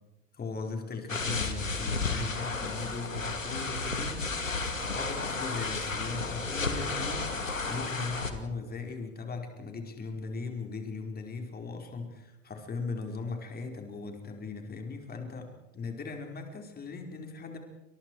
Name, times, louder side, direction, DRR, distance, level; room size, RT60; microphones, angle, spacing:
voice 1, 0.3-17.6, left 4 dB, 25° left, 3 dB, 4.8 m, -39 dB
sound 1, 1.1-8.3, left 3 dB, 90° left, 2.4 m, -33 dB
28.5 x 26.5 x 4.8 m, 1.0 s
figure-of-eight pair, 80°, 38 cm